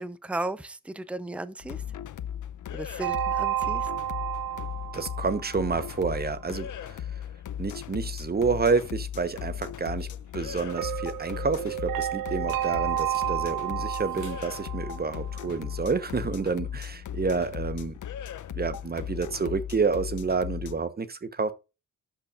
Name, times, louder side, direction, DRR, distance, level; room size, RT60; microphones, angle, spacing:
voice 1, 0.0-1.8 2.7-3.9, right 2 dB, 5° right, 0.6 m, -35 dB
sound 1, 1.6-20.8, left 9 dB, 60° left, 0.6 m, -37 dB
sound 2, 3.0-6.0 10.7-15.7, right 12 dB, 80° right, 0.6 m, -31 dB
voice 2, 4.9-7.1 7.6-10.1 10.3-17.9 18.5-21.5, right 4 dB, 30° right, 1.0 m, -29 dB
sound 3, 9.3-12.5 12.9-14.7, right 3 dB, 55° right, 3.6 m, -56 dB
12.0 x 5.8 x 2.5 m
wide cardioid pair, 120°, 34 cm